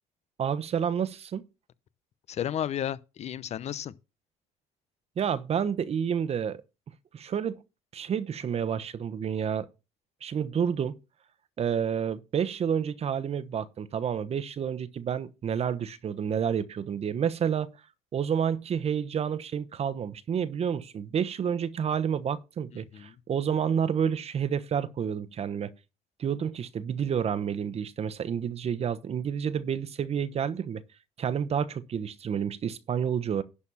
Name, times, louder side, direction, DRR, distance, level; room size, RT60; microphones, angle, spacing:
voice 1, 0.4-1.4 5.2-6.6 7.1-7.6 7.9-9.7 10.2-10.9 11.6-17.7 18.1-25.7 26.2-30.8 31.2-33.4, right 8 dB, 50° right, 1.1 m, -29 dB
voice 2, 2.3-3.9 22.7-23.2, left 10 dB, 55° left, 0.8 m, -33 dB
11.5 x 4.3 x 7.1 m
supercardioid pair, 75°, 13 cm